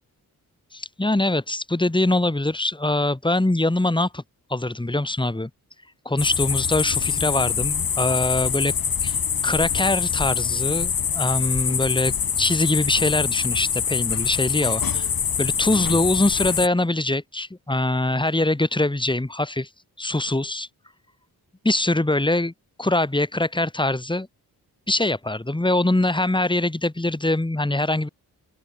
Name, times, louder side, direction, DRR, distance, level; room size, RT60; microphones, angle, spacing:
voice 1, 0.7-4.2 4.5-5.5 6.0-8.7 9.0-15.1 15.4-19.7 20.0-20.7 21.6-22.5 22.8-24.3 24.9-28.1, left 2 dB, 10° left, 3.3 m, -23 dB
sound 1, 6.2-16.7, left 7 dB, 65° left, 3.4 m, -24 dB
open air
cardioid pair, 70°, 38 cm